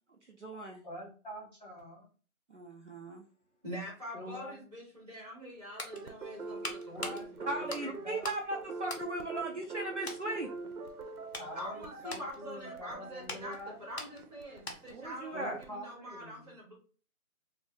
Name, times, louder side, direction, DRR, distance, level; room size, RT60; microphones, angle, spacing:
voice 1, 0.3-0.8 2.5-3.2 7.5-10.5 14.9-15.6, right 2 dB, 55° right, 1 dB, 0.5 m, -38 dB
voice 2, 0.8-2.1 4.1-4.6 6.8-7.3 7.6-8.2 11.4-13.8 15.3-16.5, left 1 dB, 30° left, -5 dB, 1.0 m, -45 dB
voice 3, 3.6-7.7 11.3-16.7, equal, 25° right, -4 dB, 1.3 m, -45 dB
sound 1, 5.3-8.5 8.8-9.7 10.0-10.3 10.8-15.1 15.4-15.5, left 2 dB, 50° left, 0.6 m, -44 dB
sound 2, 5.9-15.7, right 3 dB, 90° right, 0.7 m, -44 dB
2.5 x 2.0 x 3.8 m, 0.38 s
figure-of-eight pair, 175°, 43 cm